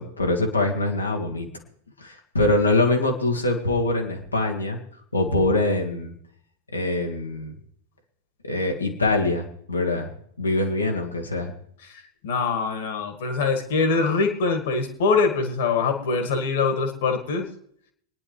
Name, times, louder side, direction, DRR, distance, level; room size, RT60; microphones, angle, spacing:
voice 1, 0.0-1.5 2.0-4.8 5.1-6.1 6.7-7.5 8.5-10.1 10.4-11.5, left 2 dB, 80° left, 1 dB, 1.8 m, -23 dB
voice 2, 12.2-17.5, left 4 dB, 55° left, 6 dB, 2.1 m, -23 dB
24.0 x 10.0 x 3.3 m, 0.66 s
figure-of-eight pair, 90°, 0 cm